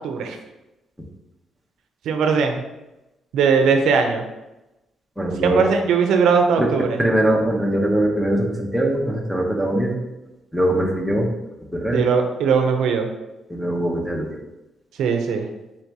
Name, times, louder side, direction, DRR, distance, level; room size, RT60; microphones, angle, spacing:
voice 1, 0.0-0.4 2.1-2.6 3.3-4.2 5.4-6.9 11.9-13.1 15.0-15.5, right 5 dB, 80° right, 5 dB, 0.5 m, -19 dB
voice 2, 5.2-5.7 6.6-6.7 7.0-10.0 10.5-11.3 11.7-12.1 13.5-14.4, right 1 dB, ahead, -2 dB, 0.7 m, -21 dB
4.3 x 2.7 x 4.5 m, 0.98 s
cardioid pair, 155°, 0 cm